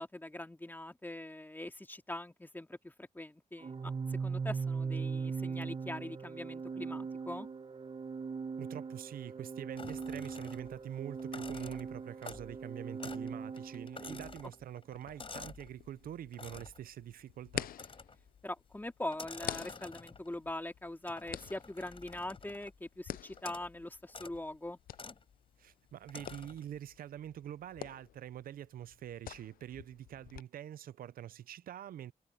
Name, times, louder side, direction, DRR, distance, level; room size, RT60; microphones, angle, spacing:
voice 1, 0.0-7.5 14.1-14.2 18.4-24.8, left 1 dB, 15° left, 2.2 m, -42 dB
Organ, 3.6-14.4, right 5 dB, 35° right, 0.9 m, -40 dB
voice 2, 8.6-17.7 25.6-32.1, right 11 dB, 85° right, 0.5 m, -45 dB
sound 1, 9.8-10.8 11.2-12.6 13.0-13.3 13.6-15.7 16.3-16.8 17.7-18.3 19.1-20.4 21.1-22.8 23.4-23.7 24.1-24.4 24.9-25.2 26.1-26.7, left 4 dB, 40° left, 4.3 m, -49 dB
sound 2, 14.9-30.4, left 12 dB, 80° left, 0.5 m, -48 dB
cardioid pair, 70°, 15 cm